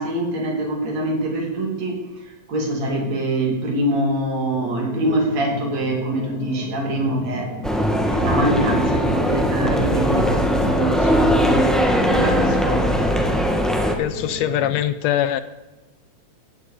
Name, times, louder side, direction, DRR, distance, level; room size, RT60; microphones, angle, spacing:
voice 1, 0.0-2.0 2.5-7.6 8.0-11.7 12.1-12.9, right 1 dB, 65° right, 1 dB, 4.1 m, -24 dB
sound 1, 4.5-14.8, left 4 dB, 55° left, 1.1 m, -34 dB
sound 2, 7.6-14.0, equal, ahead, 0.4 m, -20 dB
voice 2, 14.0-15.4, left 11 dB, 75° left, 13 dB, 1.8 m, -22 dB
15.5 x 15.5 x 5.0 m, 1.1 s
omnidirectional pair, 3.3 m